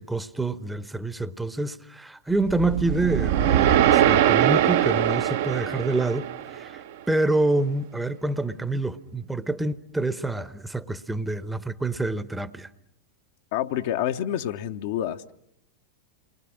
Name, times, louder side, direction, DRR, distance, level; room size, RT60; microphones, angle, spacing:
voice 1, 0.0-12.7, right 2 dB, 5° right, 0.9 m, -27 dB
sound 1, 2.5-6.8, right 10 dB, 55° right, 0.9 m, -22 dB
voice 2, 13.5-15.3, left 11 dB, 50° left, 0.9 m, -28 dB
29.0 x 22.5 x 6.3 m
figure-of-eight pair, 90°, 0 cm